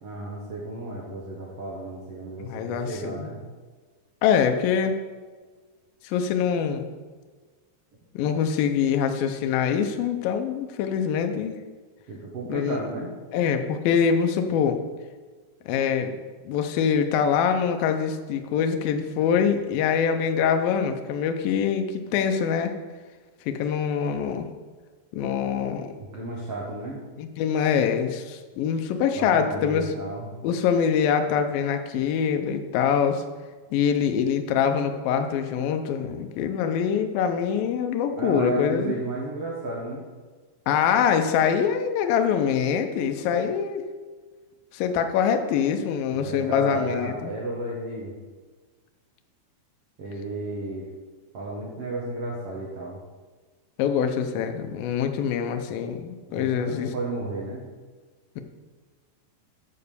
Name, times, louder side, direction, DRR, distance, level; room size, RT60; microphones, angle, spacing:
voice 1, 0.0-3.4 12.1-13.1 26.1-27.0 29.1-30.3 38.1-40.0 46.1-48.1 50.0-50.8 51.3-53.0 56.3-57.6, right 2 dB, 85° right, -4 dB, 1.3 m, -33 dB
voice 2, 2.4-3.3 4.2-5.0 6.0-6.9 8.1-11.6 12.5-12.8 13.3-14.8 15.7-16.1 16.4-22.7 23.5-24.5 25.1-25.9 27.2-29.9 30.4-33.2 33.7-39.0 40.7-43.8 44.7-47.3 53.8-56.9, left 7 dB, 90° left, 6 dB, 2.0 m, -24 dB
9.1 x 5.4 x 6.9 m, 1.4 s
omnidirectional pair, 5.2 m